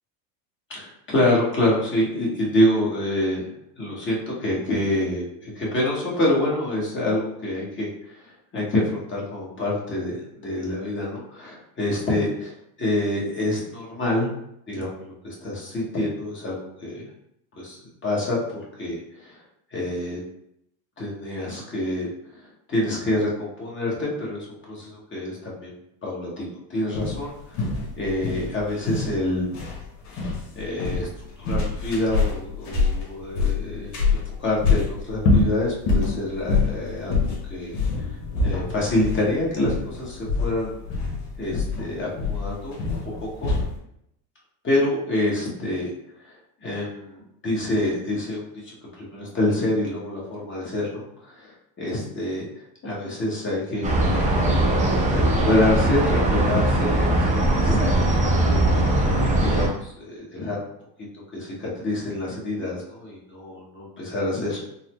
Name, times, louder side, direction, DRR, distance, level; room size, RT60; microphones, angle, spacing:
voice 1, 0.7-8.3 8.5-14.3 14.7-17.0 17.6-19.4 19.7-20.2 21.0-22.1 22.7-25.7 26.0-27.3 27.6-27.7 28.0-29.5 30.5-31.1 31.4-37.8 38.4-40.7 41.4-42.8 43.2-43.5 44.6-45.9 46.2-46.3 46.6-51.5 51.8-52.5 52.8-58.6 59.4-60.7 61.3-64.7, left 1 dB, 25° left, -5 dB, 1.0 m, -27 dB
sound 1, 26.9-43.8, left 4 dB, 75° left, 1.1 m, -25 dB
sound 2, 53.8-59.7, right 1 dB, 15° right, 0.6 m, -20 dB
4.0 x 2.0 x 3.0 m, 0.77 s
supercardioid pair, 120°, 47 cm